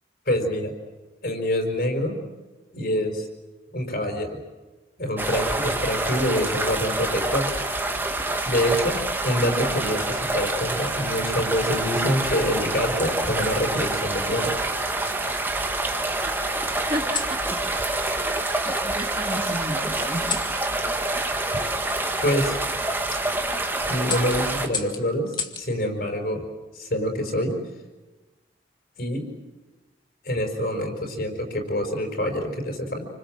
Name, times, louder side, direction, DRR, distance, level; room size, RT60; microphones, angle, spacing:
voice 1, 0.3-0.7 1.2-2.2 2.7-3.3 3.7-4.4 5.0-7.5 8.4-14.6 22.2-22.6 23.9-26.4 26.7-27.6 29.0-29.3 30.2-33.1, equal, 55° left, 3 dB, 5.4 m, -26 dB
sound 1, 5.2-24.7, right 2 dB, 10° right, 1.7 m, -27 dB
sound 2, 14.7-15.6 16.9-17.4 18.7-18.9 20.2-20.5 22.3-22.5 23.0-23.3 24.0-25.7 27.2-27.6, left 5 dB, 25° left, 2.0 m, -35 dB
voice 2, 16.9-17.4 18.6-20.4, right 1 dB, 30° right, 1 dB, 2.8 m, -31 dB
29.0 x 26.0 x 7.7 m, 1.2 s
head